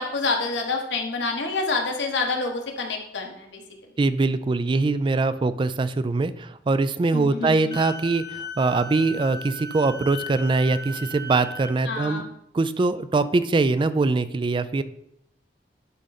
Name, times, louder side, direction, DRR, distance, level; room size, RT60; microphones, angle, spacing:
voice 1, 0.0-3.6 7.1-7.8 11.8-12.3, left 3 dB, 85° left, 2 dB, 1.4 m, -27 dB
voice 2, 4.0-12.2 12.5-14.8, right 3 dB, 30° right, 13 dB, 0.3 m, -23 dB
Wind instrument woodwind instrument, 7.7-11.8, left 1 dB, 25° left, 0.7 m, -37 dB
11.0 x 3.9 x 4.1 m, 0.76 s
head